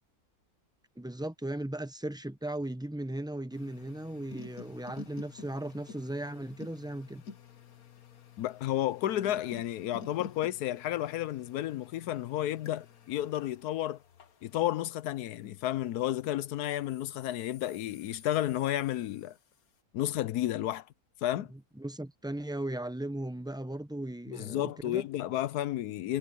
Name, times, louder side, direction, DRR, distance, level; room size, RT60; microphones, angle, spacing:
voice 1, 1.0-7.2 21.8-25.1, right 1 dB, 5° right, 0.5 m, -37 dB
sound 1, 3.5-16.2 16.7-19.6, left 5 dB, 70° left, 1.7 m, -51 dB
voice 2, 8.4-14.0 14.4-19.4 19.9-20.9 21.2-21.5 24.3-26.2, left 13 dB, 90° left, 1.2 m, -32 dB
omnidirectional pair, 1.6 m